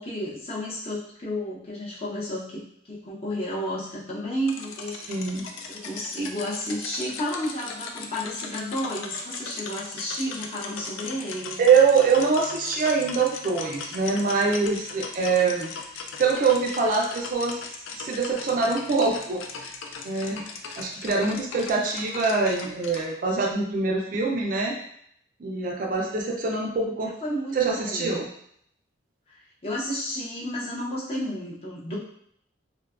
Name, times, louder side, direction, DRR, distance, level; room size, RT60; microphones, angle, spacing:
voice 1, 0.0-5.2 5.6-11.6 27.2-28.2 29.3-32.0, equal, 30° left, -5 dB, 0.5 m, -32 dB
sound 1, 4.5-23.1, left 4 dB, 80° left, 0.3 m, -38 dB
voice 2, 5.1-5.5 11.6-15.7 16.2-17.6 17.9-19.4 20.0-20.4 20.8-24.8 25.4-27.1 27.5-28.3 31.9-32.0, right 4 dB, 45° right, 0 dB, 0.3 m, -24 dB
2.6 x 2.2 x 2.3 m, 0.69 s
head